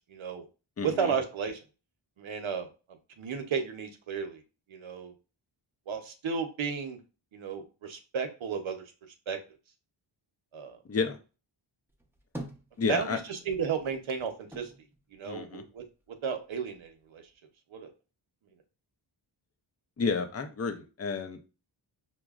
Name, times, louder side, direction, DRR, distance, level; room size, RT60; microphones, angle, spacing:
voice 1, 0.1-0.4 0.8-1.6 2.2-2.7 3.2-4.4 4.7-5.1 5.9-7.0 7.3-8.8 9.3-9.4 10.5-10.8 12.9-14.7 15.1-15.8 16.2-17.2 17.7-17.9, right 6 dB, 80° right, 5 dB, 0.8 m, -33 dB
voice 2, 0.8-1.1 10.9-11.2 12.8-13.2 15.2-15.6 20.0-21.5, left 5 dB, 35° left, 7 dB, 0.5 m, -31 dB
sound 1, 11.9-13.4 13.7-16.1 16.4-17.3, right 1 dB, 5° right, 0.7 m, -46 dB
5.9 x 2.0 x 2.3 m, 0.33 s
wide cardioid pair, 100°, 47 cm